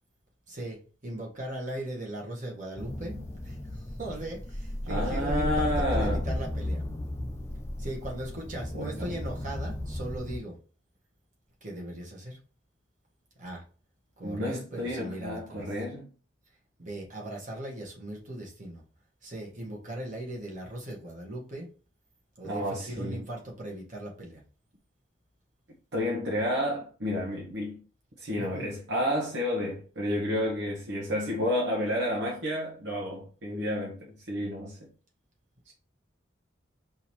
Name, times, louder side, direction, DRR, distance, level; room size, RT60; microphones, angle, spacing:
voice 1, 0.5-6.8 7.8-10.6 11.6-12.4 13.4-13.6 14.2-15.6 16.8-18.8 19.2-21.7 22.4-24.4 28.4-28.7, right 1 dB, 40° right, 1.5 m, -38 dB
sound 1, 2.8-10.4, left 1 dB, 15° left, 0.4 m, -34 dB
voice 2, 4.9-6.2 8.7-9.2 14.2-16.1 22.4-23.3 25.9-27.8 28.2-34.9, equal, 65° right, 0.9 m, -31 dB
5.4 x 2.8 x 3.0 m
head